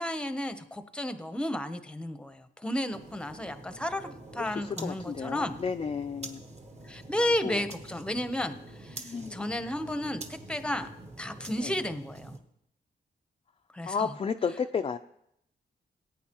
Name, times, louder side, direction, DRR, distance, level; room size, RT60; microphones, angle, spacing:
voice 1, 0.0-5.6 6.8-10.9 11.2-12.4 13.7-14.1, left 1 dB, 5° left, 9 dB, 0.7 m, -33 dB
sound 1, 2.9-12.4, right 2 dB, 35° right, 1.2 m, -46 dB
voice 2, 4.4-6.5 7.4-7.6 9.0-9.4 11.6-11.7 13.9-15.0, left 6 dB, 30° left, 6 dB, 0.3 m, -32 dB
19.0 x 9.1 x 2.9 m, 0.77 s
wide cardioid pair, 115°, 19 cm